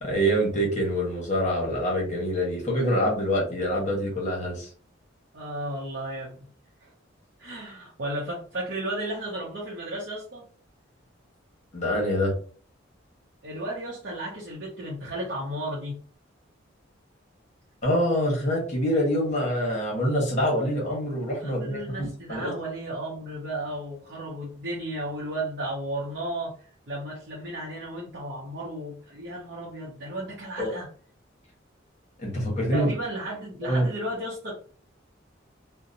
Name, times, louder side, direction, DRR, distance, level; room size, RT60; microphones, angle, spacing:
voice 1, 0.0-4.7 11.7-12.3 17.8-22.5 30.6-30.7 32.2-32.9 33.6-33.9, equal, 35° left, -2 dB, 1.1 m, -25 dB
voice 2, 5.3-6.4 6.8-6.9 7.4-10.4 13.4-16.0 21.4-26.5 26.9-30.9 32.7-34.5, right 1 dB, 60° right, -4 dB, 0.7 m, -34 dB
2.8 x 2.1 x 2.5 m, 0.43 s
head